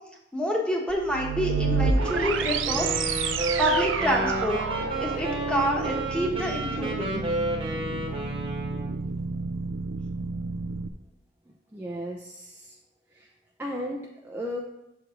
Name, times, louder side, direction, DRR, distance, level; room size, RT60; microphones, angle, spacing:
voice 1, 0.3-2.9 3.2-3.3 3.6-4.6 5.0-7.2, equal, 5° left, -1 dB, 1.3 m, -27 dB
sound 1, 0.9-10.9, right 4 dB, 85° right, 0.5 m, -30 dB
Wind instrument woodwind instrument, 2.0-8.9, right 1 dB, 30° right, 1.2 m, -32 dB
voice 2, 11.7-12.8 13.1-13.3 13.6-14.6, equal, 10° right, -2 dB, 0.6 m, -35 dB
7.5 x 4.8 x 5.1 m, 0.87 s
head